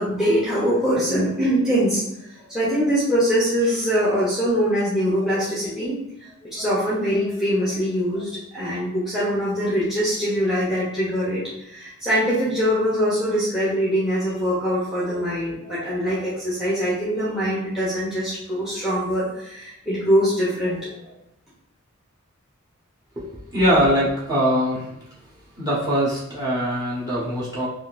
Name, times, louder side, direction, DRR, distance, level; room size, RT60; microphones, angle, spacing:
voice 1, 0.0-2.0 2.5-6.0 6.5-21.1, equal, ahead, -9 dB, 0.9 m, -23 dB
voice 2, 23.2-24.9 25.6-27.7, equal, 20° right, -9 dB, 1.1 m, -22 dB
3.8 x 2.5 x 2.5 m, 0.82 s
head